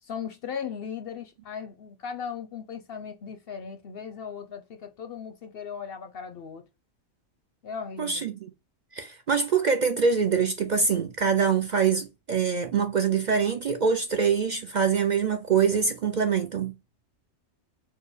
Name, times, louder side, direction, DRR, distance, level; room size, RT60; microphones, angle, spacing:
voice 1, 0.0-6.6 7.6-8.3, left 7 dB, 60° left, 0.7 m, -37 dB
voice 2, 8.0-8.3 8.9-16.7, right 6 dB, 55° right, 0.5 m, -24 dB
4.6 x 2.2 x 4.8 m
omnidirectional pair, 1.4 m